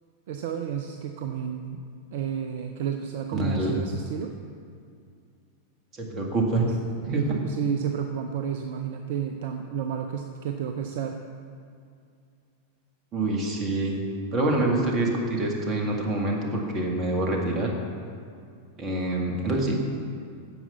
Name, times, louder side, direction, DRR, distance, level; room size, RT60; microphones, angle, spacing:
voice 1, 0.3-1.8 2.1-4.3 7.1-11.2, right 8 dB, 55° right, 5 dB, 0.6 m, -31 dB
voice 2, 3.3-3.7 5.9-6.8 7.1-7.2 13.1-14.0 14.3-17.7 18.8-19.8, right 2 dB, 30° right, 0 dB, 2.1 m, -26 dB
9.9 x 7.3 x 7.0 m, 2.3 s
figure-of-eight pair, 90°, 0 cm